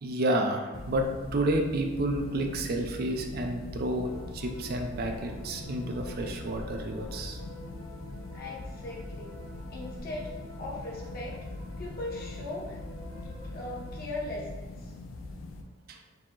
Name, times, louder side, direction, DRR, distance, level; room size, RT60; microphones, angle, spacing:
voice 1, 0.0-1.1 1.3-7.4 15.9-16.0, right 1 dB, 50° right, 4 dB, 0.4 m, -30 dB
sound 1, 0.7-15.6, left 2 dB, 90° left, 0.4 m, -41 dB
sound 2, 4.0-13.9, equal, 30° left, 1.0 m, -50 dB
voice 2, 8.3-9.4 9.7-11.4 11.8-12.8 13.5-14.9, left 2 dB, 50° left, -3 dB, 0.9 m, -39 dB
4.7 x 2.0 x 3.7 m, 1.2 s
head